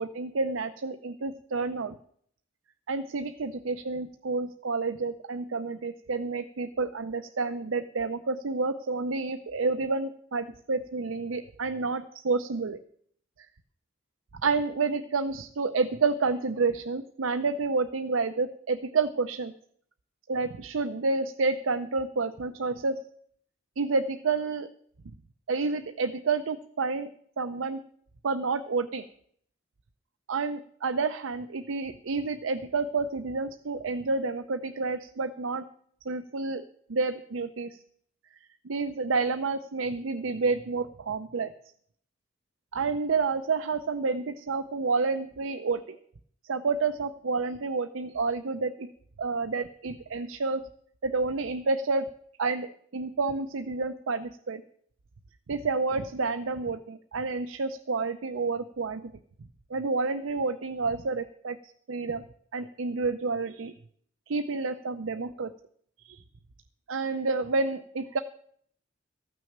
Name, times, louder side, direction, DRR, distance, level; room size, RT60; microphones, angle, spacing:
voice 1, 0.0-1.9 2.9-12.8 14.3-19.5 20.3-23.0 23.8-24.7 25.5-27.1 27.4-27.8 28.2-29.0 30.3-35.6 36.1-36.6 36.9-37.8 38.3-38.4 38.6-41.5 42.7-46.0 46.4-48.9 49.2-50.6 51.0-52.1 52.4-54.6 55.5-59.1 59.7-61.6 61.9-62.2 62.5-63.7 64.3-65.5 66.0-66.2 66.9-68.2, right 4 dB, 85° right, 9 dB, 0.6 m, -29 dB
14.5 x 6.3 x 8.6 m, 0.63 s
head